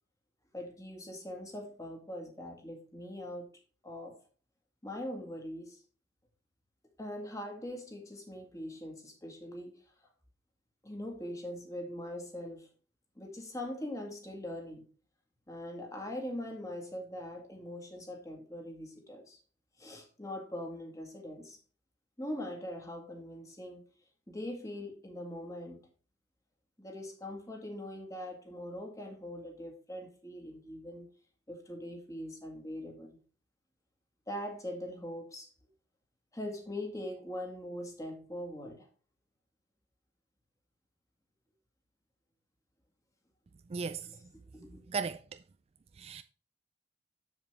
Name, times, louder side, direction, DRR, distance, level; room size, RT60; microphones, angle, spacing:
voice 1, 0.5-3.5 3.8-4.2 4.8-5.8 7.0-9.8 10.8-12.7 13.2-14.9 15.5-19.4 19.8-21.6 22.2-23.9 24.3-25.8 26.8-31.1 31.5-33.2 34.3-35.5 36.3-38.9 44.5-44.8, left 1 dB, 20° left, 1.9 m, -42 dB
voice 2, 43.7-44.1 44.7-45.4 46.0-46.2, right 5 dB, 35° right, 0.3 m, -37 dB
7.4 x 7.4 x 3.3 m
head